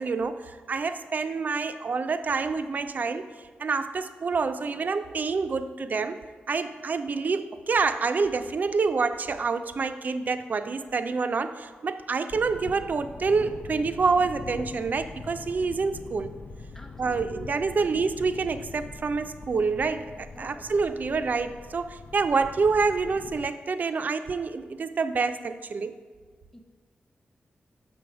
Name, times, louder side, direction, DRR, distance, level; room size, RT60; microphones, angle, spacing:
voice 1, 0.0-3.2 3.6-6.2 6.5-16.3 17.0-26.0, right 4 dB, 50° right, 10 dB, 0.4 m, -27 dB
Thunder, 12.3-23.5, left 4 dB, 50° left, 0.3 m, -43 dB
voice 2, 16.7-18.1 20.3-20.7 26.5-26.6, left 1 dB, 10° left, 2 dB, 0.8 m, -49 dB
6.3 x 6.1 x 4.7 m, 1.5 s
wide cardioid pair, 105°, 4 cm